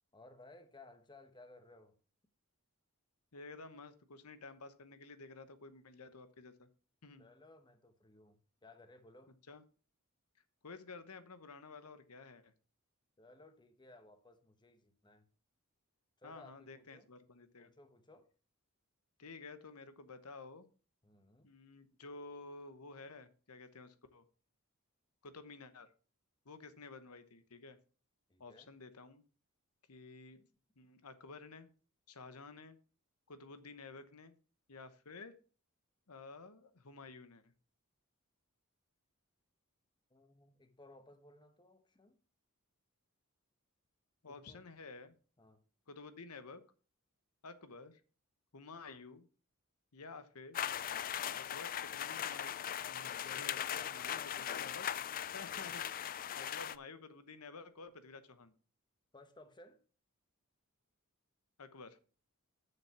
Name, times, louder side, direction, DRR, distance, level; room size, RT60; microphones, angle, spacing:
voice 1, 0.1-2.0 7.2-9.3 13.2-15.3 16.2-17.1 17.6-18.3 21.0-21.5 28.3-28.7 40.1-42.2 44.2-44.6 45.4-45.6 53.7-54.5 59.1-59.8, left 2 dB, 20° left, 1.0 m, -60 dB
voice 2, 3.3-6.7 7.0-7.3 9.5-9.6 10.6-12.5 16.2-17.7 19.2-20.7 21.4-24.2 25.2-25.9 26.4-27.8 28.4-29.2 29.9-30.5 30.8-31.7 32.1-32.8 33.3-34.4 34.7-35.3 36.1-37.5 44.2-45.1 45.9-46.6 47.4-48.0 48.5-49.3 49.9-50.6 51.3-54.9 55.3-56.1 56.3-58.5 61.6-62.0, left 3 dB, 80° left, 1.0 m, -52 dB
sound 1, 50.5-56.8, left 10 dB, 40° left, 0.4 m, -39 dB
7.2 x 6.5 x 5.9 m
head